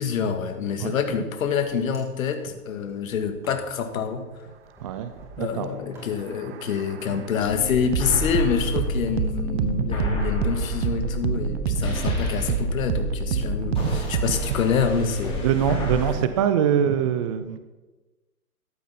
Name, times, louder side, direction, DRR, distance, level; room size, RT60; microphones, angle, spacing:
voice 1, 0.0-4.3 5.4-15.5, left 6 dB, 65° left, 7 dB, 1.8 m, -27 dB
Wind, 1.3-15.5, left 1 dB, 5° right, 2.9 m, -45 dB
voice 2, 4.8-5.7 9.5-10.0 11.5-11.9 13.7-14.4 15.4-17.6, right 9 dB, 25° right, 10 dB, 0.4 m, -25 dB
sound 1, 5.9-14.6, right 8 dB, 45° right, 1.0 m, -28 dB
sound 2, 7.4-16.1, left 2 dB, 10° left, 4.7 m, -30 dB
14.0 x 12.0 x 4.2 m, 1.2 s
hypercardioid pair, 135°, 45 cm